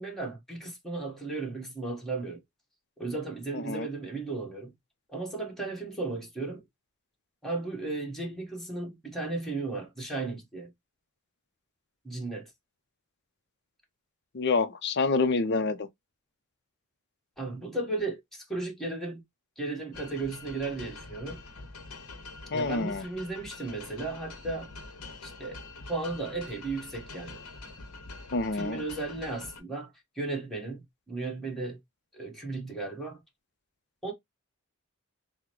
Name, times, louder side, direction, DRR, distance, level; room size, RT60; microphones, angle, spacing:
voice 1, 0.0-2.4 3.0-4.7 5.1-6.6 7.4-10.7 12.0-12.5 17.4-19.2 19.6-21.4 22.5-24.7 25.2-25.6 25.9-27.4 28.5-29.9 30.1-31.8 32.1-33.2 34.0-34.1, right 3 dB, ahead, 1.4 m, -35 dB
voice 2, 3.5-3.9 14.3-15.9 22.5-23.0 28.3-28.9, left 3 dB, 50° left, 0.6 m, -27 dB
sound 1, 19.9-29.6, left 3 dB, 75° left, 0.9 m, -45 dB
6.0 x 2.2 x 3.0 m
head